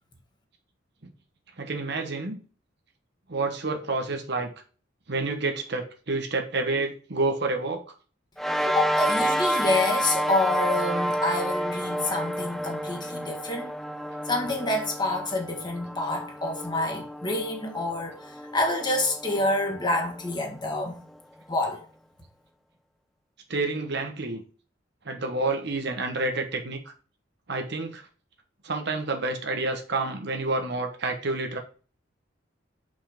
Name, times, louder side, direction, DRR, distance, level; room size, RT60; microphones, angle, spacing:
voice 1, 1.6-2.4 3.3-4.5 5.1-7.8 23.5-24.4 25.0-26.9 27.5-28.1 28.6-31.6, right 3 dB, 60° right, 1.3 m, -29 dB
sound 1, 8.4-21.1, equal, ahead, 0.6 m, -30 dB
voice 2, 8.6-13.7 14.2-21.0 21.5-21.8, left 2 dB, 25° left, 1.7 m, -28 dB
5.6 x 5.6 x 5.2 m
head